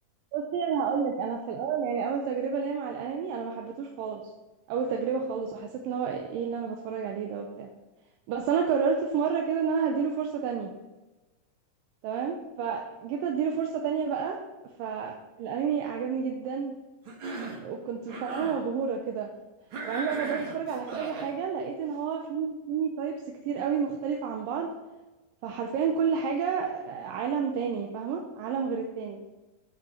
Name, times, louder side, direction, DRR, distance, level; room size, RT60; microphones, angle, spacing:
voice 1, 0.3-4.2 4.7-7.7 8.3-10.8 12.0-14.4 14.8-16.7 17.6-19.3 19.8-24.7 25.4-29.2, right 6 dB, 80° right, 2 dB, 2.4 m, -30 dB
Cough, 17.1-17.7 18.0-18.6 19.7-21.3, right 2 dB, 50° right, 1.7 m, -37 dB
8.2 x 5.2 x 6.4 m, 1.1 s
omnidirectional pair, 4.1 m